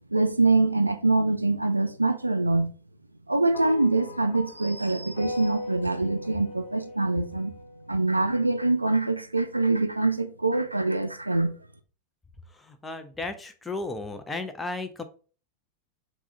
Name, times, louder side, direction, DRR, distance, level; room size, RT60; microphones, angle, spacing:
voice 1, 0.1-2.7 3.3-7.6 7.9-11.6, right 2 dB, 85° right, 0.3 m, -24 dB
sound 1, 3.5-8.0, left 2 dB, 65° left, 0.9 m, -39 dB
voice 2, 12.5-15.0, left 3 dB, 10° left, 0.4 m, -34 dB
3.5 x 2.1 x 3.6 m
figure-of-eight pair, 90°, 0 cm